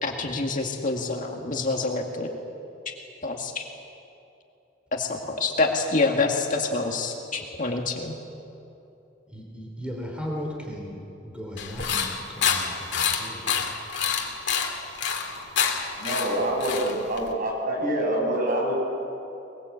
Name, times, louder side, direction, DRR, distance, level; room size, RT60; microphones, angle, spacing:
voice 1, 0.0-2.3 3.2-3.6 4.9-8.1, left 3 dB, 45° left, 2 dB, 2.1 m, -27 dB
voice 2, 9.3-11.0 11.2-13.6, equal, 5° right, -1 dB, 3.0 m, -36 dB
sound 1, 11.6-17.3, left 7 dB, 65° left, 2.5 m, -27 dB
voice 3, 16.0-18.8, right 1 dB, 45° right, -1 dB, 7.3 m, -26 dB
22.0 x 22.0 x 8.2 m, 2.8 s
head